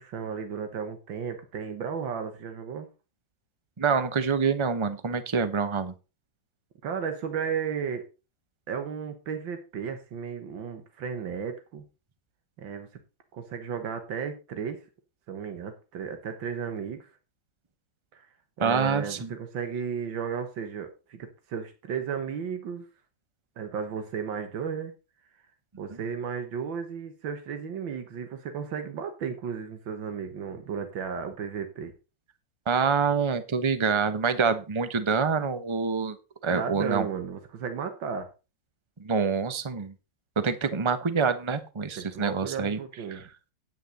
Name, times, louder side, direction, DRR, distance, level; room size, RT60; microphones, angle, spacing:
voice 1, 0.0-2.9 6.8-8.0 8.7-11.8 12.6-12.9 13.3-14.8 15.3-17.1 18.1-18.3 18.6-22.9 23.6-24.9 25.8-31.9 36.5-38.3 42.0-43.2, right 6 dB, 85° right, 7 dB, 2.1 m, -34 dB
voice 2, 3.8-5.9 18.6-19.3 32.7-36.2 36.4-37.1 39.0-39.9 40.4-42.8 43.1-43.2, right 5 dB, 25° right, 11 dB, 0.7 m, -26 dB
9.4 x 9.3 x 4.0 m, 0.30 s
omnidirectional pair, 2.0 m